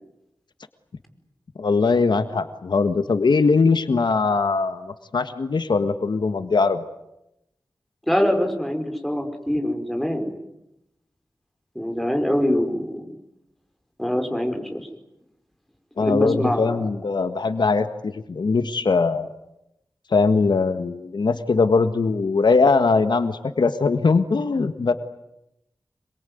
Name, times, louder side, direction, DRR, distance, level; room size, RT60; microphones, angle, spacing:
voice 1, 1.6-6.8 16.0-19.3 20.1-24.9, left 4 dB, 75° left, 10 dB, 1.6 m, -21 dB
voice 2, 8.1-10.4 11.7-13.0 14.0-14.9 16.0-16.8, equal, ahead, 5 dB, 4.8 m, -24 dB
27.5 x 22.5 x 9.4 m, 0.86 s
wide cardioid pair, 95°, 8 cm